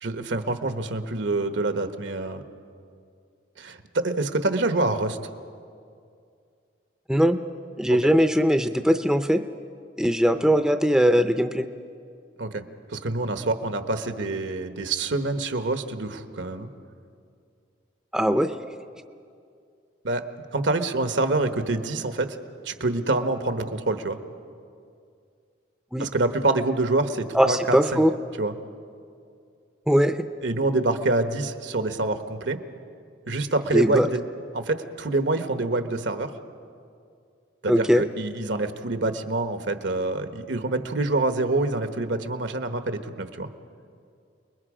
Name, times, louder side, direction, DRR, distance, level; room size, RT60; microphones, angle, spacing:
voice 1, 0.0-2.4 3.6-5.2 7.9-8.0 12.4-12.6 12.9-16.7 20.0-20.2 20.5-22.4 22.6-24.2 26.0-28.0 28.4-28.5 30.4-32.6 33.3-34.2 34.5-36.3 37.6-43.5, right 2 dB, 80° right, 8 dB, 1.2 m, -26 dB
voice 2, 7.8-9.4 10.0-11.7 18.1-18.5 25.9-26.1 27.3-28.1 29.9-30.2 33.7-34.1 37.7-38.0, equal, 5° right, 8 dB, 0.5 m, -20 dB
29.0 x 21.0 x 5.0 m, 2.4 s
head